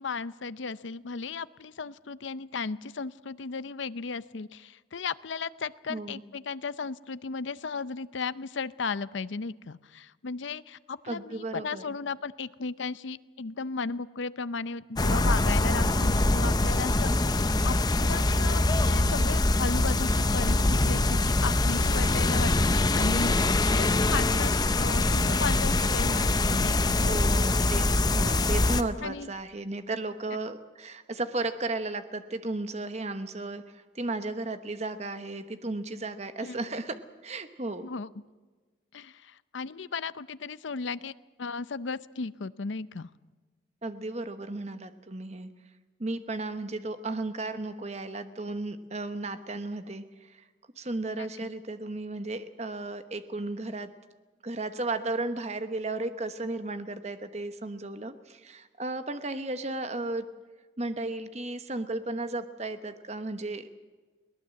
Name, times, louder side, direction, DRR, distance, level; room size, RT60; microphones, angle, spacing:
voice 1, 0.0-27.0 29.0-29.3 36.4-36.6 37.8-38.1 38.9-41.1 41.4-43.1 51.2-51.3, left 4 dB, 75° left, 16 dB, 0.6 m, -35 dB
voice 2, 5.9-6.2 11.1-12.0 27.0-37.9 43.8-45.5 46.0-50.4 50.8-53.9 54.4-60.3 60.8-63.7, right 2 dB, 35° right, 9 dB, 1.1 m, -34 dB
sound 1, 15.0-28.8, left 2 dB, 20° left, 0.7 m, -24 dB
22.0 x 18.5 x 7.7 m, 1.3 s
head